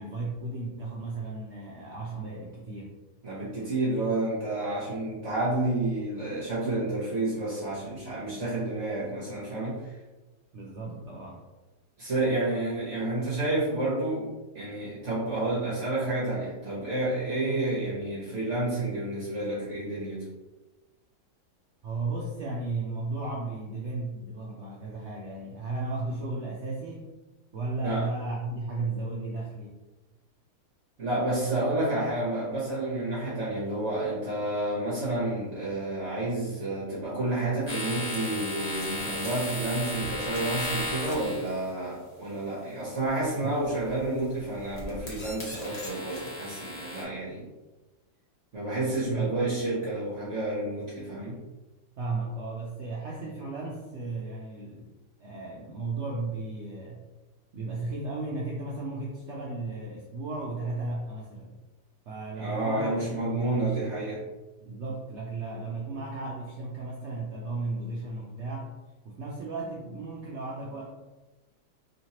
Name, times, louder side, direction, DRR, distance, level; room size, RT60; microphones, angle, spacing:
voice 1, 0.0-2.9 10.5-11.4 21.8-27.1 27.5-29.7 43.4-43.5 49.1-49.3 52.0-54.9 55.2-57.0 57.5-61.6 62.1-64.0 64.6-68.8 69.0-70.9, right 3 dB, 85° right, -3 dB, 0.6 m, -35 dB
voice 2, 3.2-9.9 12.0-14.3 14.5-20.3 27.8-28.1 31.0-47.4 48.5-51.4 62.4-64.2, right 2 dB, 50° right, -7 dB, 1.1 m, -30 dB
sound 1, 37.7-41.7 43.7-44.0 44.5-47.0, left 1 dB, 35° left, 0.7 m, -35 dB
3.1 x 2.9 x 2.8 m, 1.1 s
omnidirectional pair, 1.8 m